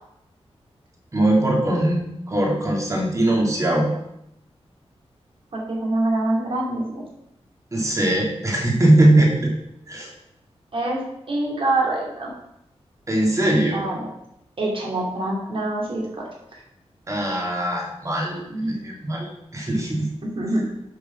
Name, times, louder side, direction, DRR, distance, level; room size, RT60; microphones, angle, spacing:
voice 1, 1.1-3.9 7.7-9.5 9.9-10.1 13.1-13.9 17.1-20.1, right 1 dB, 30° right, -1 dB, 2.2 m, -21 dB
voice 2, 5.5-7.0 10.7-12.3 13.7-14.1 14.6-16.6 18.5-18.7 20.2-20.6, right 2 dB, 55° right, -2 dB, 2.6 m, -25 dB
7.7 x 6.4 x 5.9 m, 0.80 s
wide cardioid pair, 140°, 11 cm